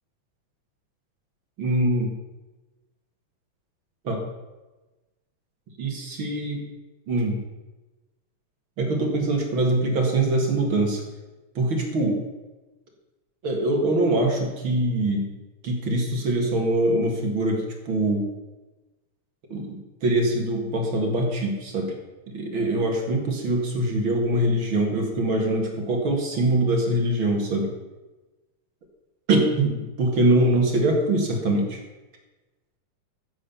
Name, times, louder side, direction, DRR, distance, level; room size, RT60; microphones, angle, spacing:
voice 1, 1.6-2.1 4.0-4.2 5.8-6.6 7.1-7.4 8.8-11.0 11.6-12.2 13.4-15.3 15.6-18.3 19.5-21.9 22.3-27.7 29.3-31.8, right 1 dB, 45° right, 2 dB, 2.3 m, -23 dB
14.5 x 7.4 x 7.0 m, 1.1 s
omnidirectional pair, 3.6 m